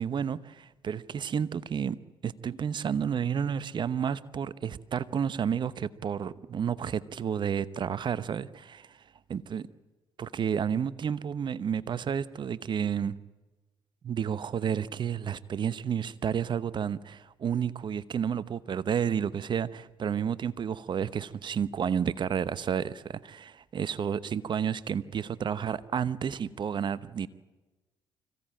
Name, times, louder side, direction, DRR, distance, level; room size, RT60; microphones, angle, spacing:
voice 1, 0.0-2.0 2.2-9.0 9.3-9.6 10.2-13.2 14.0-27.3, right 8 dB, 50° right, 0.9 m, -31 dB
25.0 x 16.0 x 9.0 m
hypercardioid pair, 55°, 10 cm